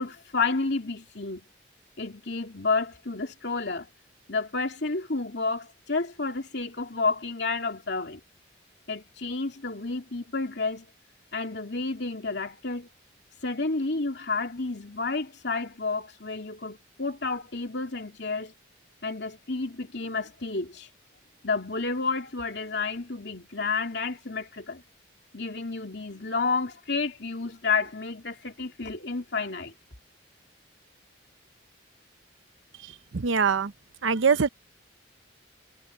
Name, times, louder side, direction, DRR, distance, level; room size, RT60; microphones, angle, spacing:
voice 1, 0.0-1.4 2.0-3.9 4.3-8.2 8.9-10.9 11.3-12.9 13.4-18.5 19.0-20.9 21.4-24.8 25.3-29.7, left 4 dB, 60° left, 2.9 m, -30 dB
voice 2, 33.1-33.7 34.0-34.5, right 5 dB, 80° right, 0.7 m, -23 dB
head